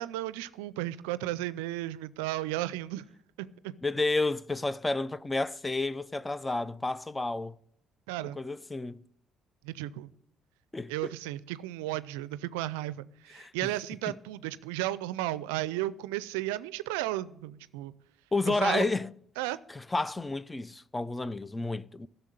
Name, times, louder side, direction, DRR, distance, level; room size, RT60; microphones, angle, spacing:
voice 1, 0.0-3.0 3.4-3.7 8.1-8.4 9.6-10.1 10.9-17.9 18.5-18.9 19.4-19.6, right 15 dB, 85° right, 0.4 m, -34 dB
voice 2, 3.8-7.5 8.4-9.0 10.7-11.1 13.3-13.7 14.1-14.2 18.3-19.1 19.7-22.1, left 2 dB, 20° left, 0.5 m, -31 dB
12.0 x 6.8 x 9.7 m
hypercardioid pair, 55°, 0 cm